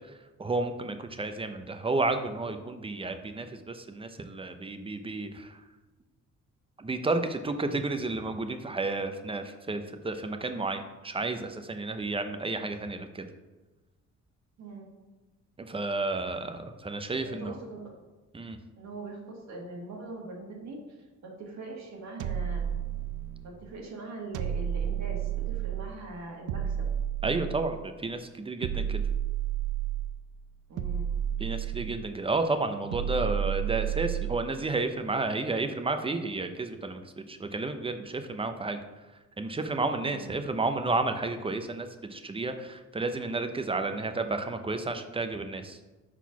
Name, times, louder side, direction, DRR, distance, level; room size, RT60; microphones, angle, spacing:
voice 1, 0.4-5.6 6.8-13.3 15.6-17.6 18.3-18.6 27.2-29.0 31.4-38.8 39.4-45.8, right 3 dB, 20° right, 7 dB, 0.5 m, -31 dB
voice 2, 14.6-14.9 17.2-17.9 18.8-20.8 21.2-22.7 23.4-26.9 30.7-31.1 40.0-40.3, right 2 dB, 65° right, -1 dB, 1.6 m, -42 dB
sound 1, 22.2-23.5 24.3-26.0 26.5-27.9 28.6-30.2 30.8-32.2 32.9-34.5, right 10 dB, 85° right, 0.5 m, -31 dB
4.5 x 4.1 x 5.7 m, 1.2 s
cardioid pair, 90°, 30 cm